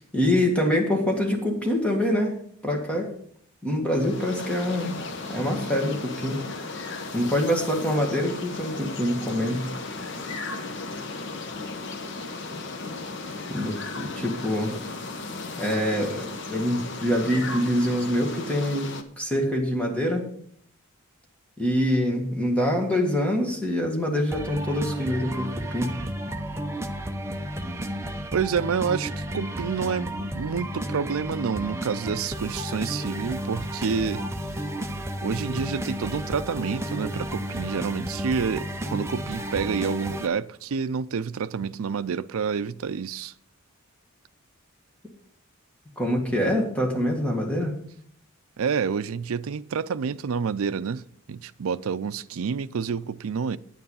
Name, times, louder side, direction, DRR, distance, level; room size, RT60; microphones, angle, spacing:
voice 1, 0.0-2.3 2.6-3.1 3.6-5.0 5.3-6.4 7.1-9.7 13.5-14.7 15.6-18.9 19.2-20.3 21.6-25.9 46.0-47.7, equal, 5° left, 1.7 m, -25 dB
sound 1, 3.9-19.0, left 3 dB, 55° left, 1.0 m, -35 dB
sound 2, 24.3-40.3, equal, 10° right, 0.7 m, -32 dB
voice 2, 28.3-34.2 35.2-43.3 48.6-51.0 51.3-53.6, right 6 dB, 70° right, 0.4 m, -28 dB
9.3 x 9.3 x 5.5 m
head